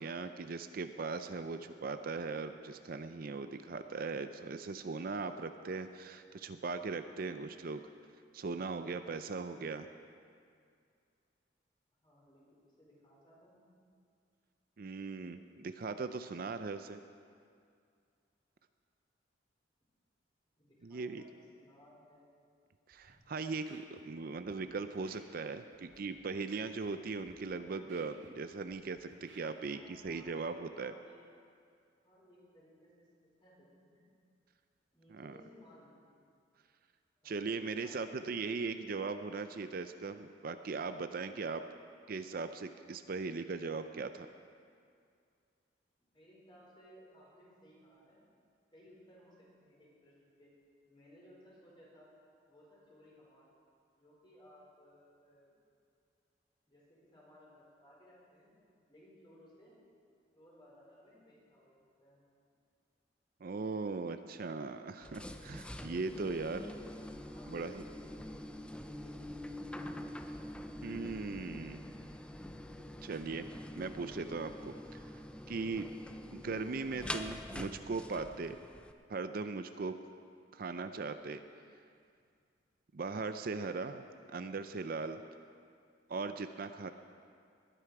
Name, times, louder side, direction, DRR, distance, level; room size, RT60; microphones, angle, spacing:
voice 1, 0.0-7.8 8.3-9.9 14.8-17.0 20.8-21.2 22.9-30.9 35.1-35.3 37.2-41.6 42.1-44.3 63.4-66.6 67.5-67.8 70.8-71.8 73.0-73.5 73.7-75.9 76.3-78.6 79.1-80.0 80.5-81.4 82.9-84.0 84.3-85.2 86.1-86.9, right 4 dB, 50° right, 9 dB, 0.5 m, -39 dB
voice 2, 12.0-13.7 20.6-22.3 25.9-26.3 29.7-31.1 32.0-33.1 33.4-34.0 34.9-36.2 37.2-37.6 37.8-39.2 46.1-48.2 48.7-50.5 50.9-52.1 52.5-53.5 53.9-55.5 56.7-58.5 58.9-59.7 60.3-62.2 65.7-69.2, equal, 25° left, -5 dB, 4.5 m, -60 dB
Scratching (performance technique), 22.9-23.1 23.5-24.0 24.3-24.5 24.9-25.2 25.7-26.0 26.3-26.9 27.1-27.3 27.7-28.8 29.1-29.7 29.9-30.1, right 3 dB, 85° right, 2.0 m, -60 dB
sound 1, 65.0-78.9, left 1 dB, 5° left, 0.5 m, -45 dB
20.5 x 10.0 x 4.8 m, 2.3 s
head